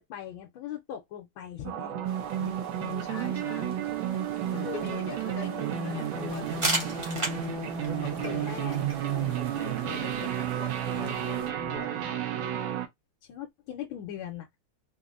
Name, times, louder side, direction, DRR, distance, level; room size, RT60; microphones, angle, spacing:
voice 1, 0.0-1.9 4.6-5.0 7.8-9.4 13.2-14.5, left 10 dB, 85° left, 1.4 m, -40 dB
sound 1, 1.6-12.9, right 9 dB, 75° right, 1.5 m, -32 dB
sound 2, 2.0-11.5, right 5 dB, 60° right, 1.2 m, -44 dB
voice 2, 2.4-4.2 4.5-6.9 8.0-8.5 9.4-12.2, left 4 dB, 50° left, 1.3 m, -42 dB
sound 3, 6.3-11.8, right 2 dB, 20° right, 1.0 m, -36 dB
3.8 x 2.6 x 2.5 m
omnidirectional pair, 2.2 m